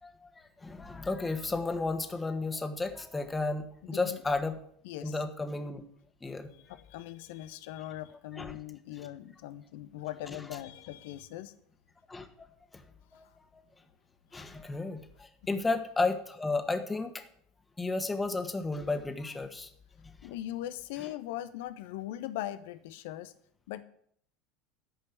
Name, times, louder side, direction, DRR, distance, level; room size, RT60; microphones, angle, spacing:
voice 1, 0.6-4.5 5.0-5.8 6.2-6.5 8.4-8.5 12.1-12.5 12.7-12.8 13.1-13.2 14.3-17.2 17.8-19.7, left 3 dB, 15° left, 7 dB, 1.7 m, -33 dB
voice 2, 3.8-4.2 4.8-5.2 6.5-11.5 13.1-13.3 14.3-14.4 15.4-15.6 20.2-23.3 23.7-23.8, left 13 dB, 65° left, 12 dB, 0.9 m, -40 dB
13.5 x 5.4 x 8.3 m, 0.65 s
hypercardioid pair, 75°, 0 cm